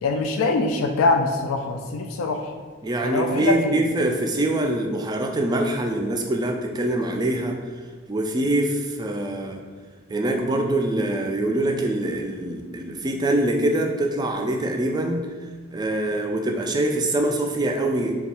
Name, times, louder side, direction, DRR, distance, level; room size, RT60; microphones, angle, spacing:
voice 1, 0.0-2.5 3.0-3.8, left 3 dB, 85° left, 4 dB, 0.4 m, -23 dB
voice 2, 2.8-7.6 8.1-9.6 10.1-15.2 15.7-18.1, right 1 dB, 20° right, 3 dB, 0.3 m, -24 dB
3.4 x 2.3 x 4.2 m, 1.5 s
head